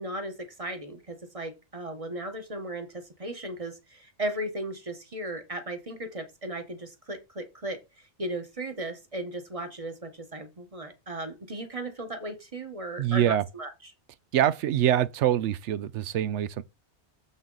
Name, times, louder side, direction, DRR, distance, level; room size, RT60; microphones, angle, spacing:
voice 1, 0.0-7.8 8.2-13.7, right 1 dB, 30° right, 1.1 m, -36 dB
voice 2, 13.0-13.4 14.3-16.6, right 11 dB, 85° right, 0.9 m, -24 dB
7.2 x 5.5 x 3.9 m
omnidirectional pair, 1.2 m